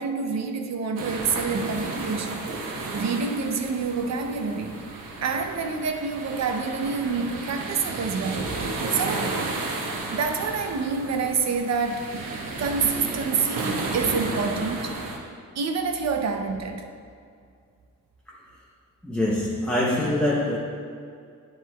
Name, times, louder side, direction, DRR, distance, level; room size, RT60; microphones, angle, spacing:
voice 1, 0.0-2.5 2.9-4.8 5.2-9.4 10.1-12.1 12.6-15.0 15.5-16.9, right 5 dB, 55° right, 5 dB, 0.7 m, -27 dB
sound 1, 1.0-15.2, right 3 dB, 85° right, 1.1 m, -33 dB
voice 2, 19.0-20.6, left 1 dB, 5° left, -5 dB, 0.7 m, -24 dB
11.0 x 7.7 x 2.3 m, 2.3 s
wide cardioid pair, 160°, 32 cm